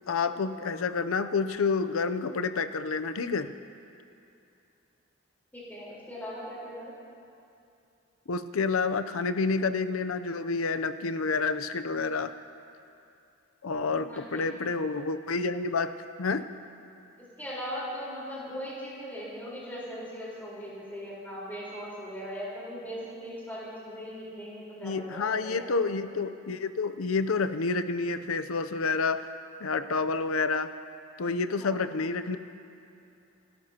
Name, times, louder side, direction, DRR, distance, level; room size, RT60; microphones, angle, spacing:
voice 1, 0.1-3.5 8.3-12.3 13.6-16.5 24.8-29.3 29.6-30.7 31.2-32.4, left 4 dB, 85° left, 10 dB, 0.6 m, -29 dB
voice 2, 5.5-6.9 14.1-14.4 17.4-25.9 31.6-31.8, equal, 10° left, -8 dB, 4.2 m, -39 dB
29.0 x 13.0 x 2.9 m, 2.7 s
head